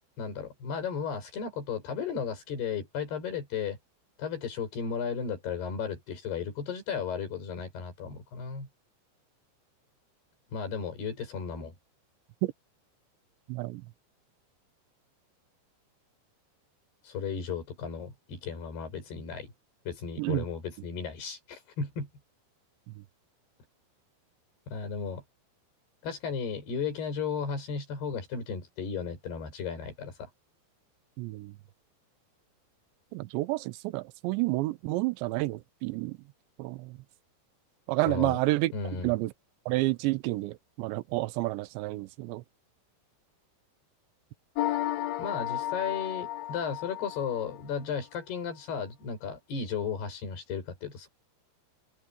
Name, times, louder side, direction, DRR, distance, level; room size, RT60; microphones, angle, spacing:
voice 1, 0.2-3.8 4.2-8.7 10.5-11.7 17.0-19.5 19.9-22.1 24.7-25.2 26.0-30.3 38.1-38.4 38.7-39.1 45.2-51.1, left 6 dB, 60° left, 8.1 m, -35 dB
voice 2, 13.5-13.8 20.2-20.4 31.2-31.5 33.1-36.2 36.6-37.0 37.9-38.7 39.0-39.3 39.7-42.4, right 20 dB, 85° right, 3.0 m, -30 dB
sound 1, 44.6-47.9, left 14 dB, 85° left, 3.8 m, -33 dB
omnidirectional pair, 5.3 m